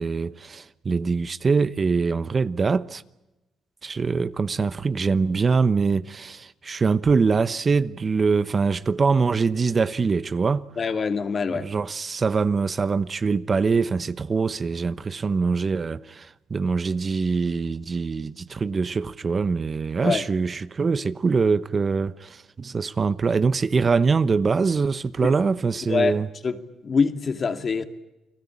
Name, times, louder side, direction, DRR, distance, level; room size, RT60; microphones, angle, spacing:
voice 1, 0.0-3.0 3.8-10.7 11.5-26.3, right 4 dB, 35° right, 0.9 m, -23 dB
voice 2, 10.8-11.7 20.0-20.3 25.2-25.3 25.9-26.6 26.8-27.8, left 5 dB, 40° left, 2.3 m, -24 dB
29.5 x 19.5 x 8.5 m
cardioid pair, 90°, 0 cm